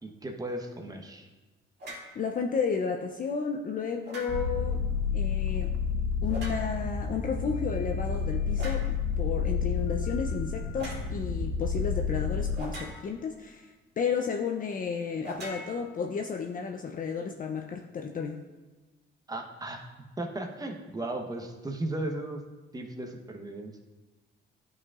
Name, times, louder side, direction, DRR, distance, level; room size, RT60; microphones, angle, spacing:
voice 1, 0.0-1.3 19.3-19.8 20.2-22.4 22.7-23.8, right 1 dB, 20° right, 3 dB, 0.9 m, -36 dB
sound 1, 1.8-2.1 4.0-4.7 6.3-6.9 8.6-8.9 10.8-11.1 12.6-13.3 15.2-16.4, equal, 55° right, 2.3 m, -42 dB
voice 2, 2.2-4.8 5.1-5.7 6.2-18.4, left 6 dB, 45° left, 3 dB, 0.5 m, -32 dB
sound 2, 4.3-12.6, left 5 dB, 70° left, 0.9 m, -30 dB
11.0 x 4.9 x 2.4 m, 1.2 s
cardioid pair, 90°, 20 cm